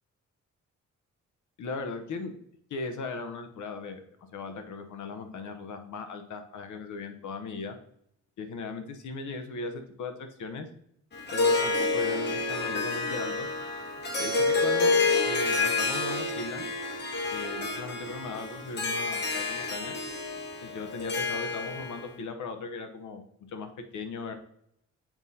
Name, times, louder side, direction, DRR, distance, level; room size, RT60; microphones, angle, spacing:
voice 1, 1.6-2.3 2.7-4.0 4.3-7.8 8.4-10.7 11.3-13.5 14.2-15.0 15.2-16.6 17.3-19.9 20.6-23.2 23.5-24.3, left 4 dB, 80° left, 7 dB, 0.9 m, -38 dB
Harp, 11.1-22.1, left 3 dB, 35° left, 1.2 m, -29 dB
7.0 x 5.5 x 2.7 m, 0.71 s
cardioid pair, 105°, 30 cm